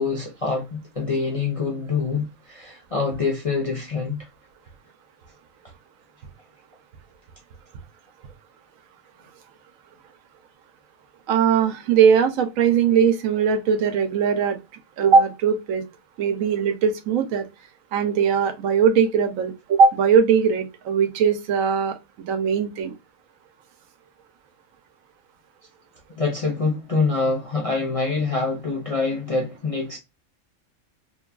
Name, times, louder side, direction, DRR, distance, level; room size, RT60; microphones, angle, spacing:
voice 1, 0.0-4.2 26.2-30.0, left 4 dB, 50° left, 0.4 m, -25 dB
voice 2, 11.3-14.6 15.0-15.8 16.2-17.5 17.9-22.9, right 6 dB, 85° right, 1.0 m, -20 dB
2.9 x 2.2 x 2.2 m
omnidirectional pair, 1.3 m